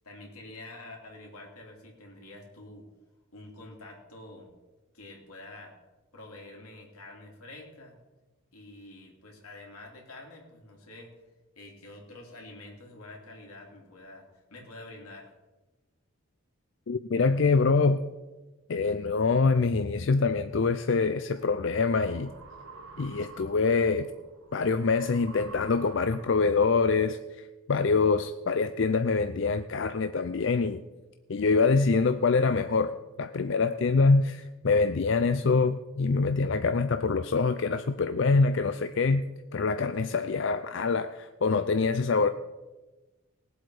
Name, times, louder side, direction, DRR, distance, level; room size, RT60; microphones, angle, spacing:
voice 1, 0.0-2.9 3.3-4.5 4.9-5.7 6.1-8.0 8.5-11.1 11.5-15.3, left 2 dB, 90° left, 0 dB, 3.3 m, -47 dB
voice 2, 16.9-18.0 18.7-22.3 23.0-24.1 24.5-30.8 31.3-32.9 33.2-39.2 39.5-42.3, left 4 dB, 55° left, 10 dB, 0.4 m, -25 dB
sound 1, 20.8-26.6, right 3 dB, 85° right, 1.4 m, -49 dB
19.5 x 8.0 x 4.9 m, 1.2 s
head